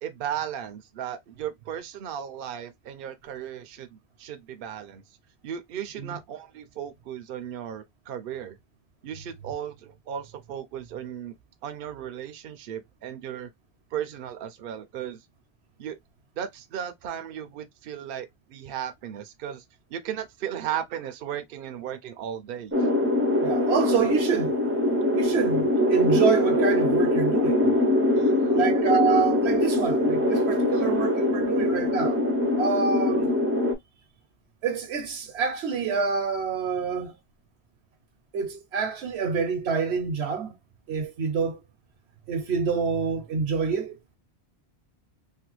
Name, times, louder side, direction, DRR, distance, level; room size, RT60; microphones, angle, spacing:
voice 1, 0.0-5.0 5.4-8.6 9.0-11.4 11.6-13.5 13.9-15.2 15.8-16.0 16.4-19.6 19.9-22.8 28.1-28.6, right 9 dB, 65° right, 0.7 m, -36 dB
sound 1, 22.7-33.7, left 1 dB, 20° right, 0.4 m, -23 dB
voice 2, 23.4-24.6 25.1-27.7 28.5-32.2 32.6-33.3 34.6-37.2 38.3-40.6 40.9-41.6 42.3-44.0, right 6 dB, 80° right, 1.0 m, -27 dB
3.2 x 2.2 x 2.9 m
omnidirectional pair, 1.1 m